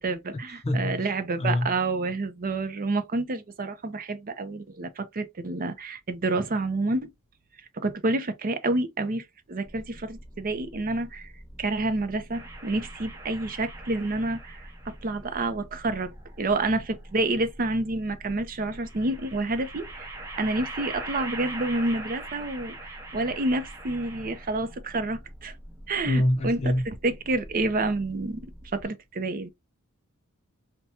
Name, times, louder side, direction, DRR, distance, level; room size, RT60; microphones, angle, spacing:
voice 1, 0.0-7.1 7.7-11.3 11.6-25.6 25.9-28.5 28.7-29.5, right 2 dB, 40° right, 0.6 m, -29 dB
voice 2, 0.6-1.0 1.4-1.7 26.1-26.8, left 1 dB, 30° left, 0.6 m, -24 dB
sound 1, 9.6-28.9, equal, 5° left, 1.3 m, -47 dB
sound 2, 12.3-15.0 16.1-17.1 18.7-24.7, right 2 dB, 10° right, 0.9 m, -41 dB
5.5 x 2.2 x 2.7 m
head